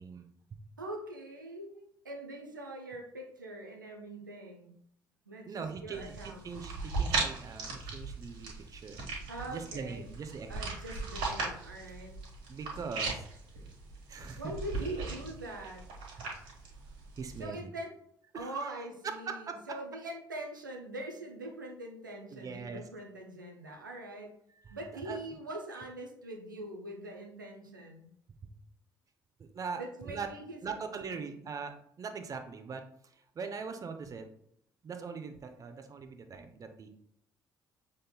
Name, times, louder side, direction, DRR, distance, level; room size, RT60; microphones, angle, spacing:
voice 1, 0.0-0.6 5.5-9.0 9.5-10.7 12.5-13.3 14.1-14.5 16.2-16.3 17.2-17.7 18.3-18.7 19.0-19.8 22.3-22.8 24.5-24.8 25.0-25.2 28.4-28.5 29.4-30.3 30.6-34.3 34.8-36.9, right 5 dB, 35° right, 7 dB, 0.6 m, -41 dB
voice 2, 0.8-4.8 5.3-6.4 9.3-10.1 10.5-12.1 14.4-15.8 17.4-17.9 18.3-24.3 24.7-28.1 29.7-30.7 31.1-31.2, right 1 dB, 85° right, 0 dB, 0.6 m, -43 dB
sound 1, 5.9-17.4, right 3 dB, 60° right, 1.4 m, -38 dB
6.4 x 3.7 x 2.2 m, 0.69 s
figure-of-eight pair, 45°, 10 cm